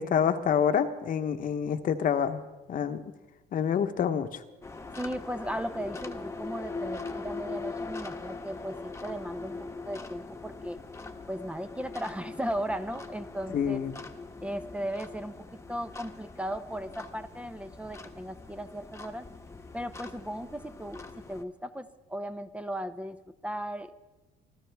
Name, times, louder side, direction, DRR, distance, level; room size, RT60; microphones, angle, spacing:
voice 1, 0.0-2.4 2.7-3.0 3.5-4.4 13.5-14.0, left 8 dB, 55° left, 9 dB, 1.1 m, -27 dB
sound 1, 4.6-21.4, left 3 dB, 15° left, 1.2 m, -42 dB
voice 2, 5.0-10.8 11.3-13.8 14.4-15.3 15.7-19.3 19.7-21.0 21.3-23.9, equal, 5° right, 10 dB, 0.8 m, -36 dB
25.0 x 14.5 x 3.5 m, 1.2 s
cardioid pair, 110°, 17 cm